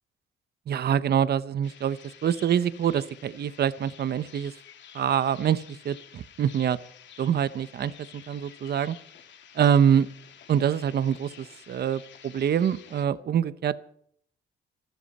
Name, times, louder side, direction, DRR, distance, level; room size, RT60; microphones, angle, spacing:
voice 1, 0.7-4.5 4.9-6.8 7.2-9.0 9.5-10.1 10.5-13.8, right 9 dB, 55° right, 15 dB, 0.9 m, -25 dB
sound 1, 1.6-13.1, left 8 dB, 65° left, 2.6 m, -50 dB
26.0 x 13.0 x 4.3 m, 0.64 s
cardioid pair, 90°, 20 cm